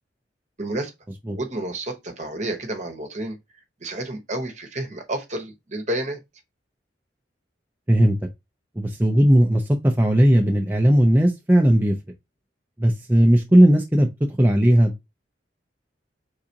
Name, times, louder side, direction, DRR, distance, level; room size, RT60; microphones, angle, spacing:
voice 1, 0.6-0.9 1.3-3.4 3.8-6.2, right 1 dB, 40° right, 1.1 m, -30 dB
voice 2, 8.8-12.0 12.8-14.1 14.4-14.9, right 1 dB, 10° right, 0.5 m, -17 dB
4.8 x 3.7 x 2.8 m
head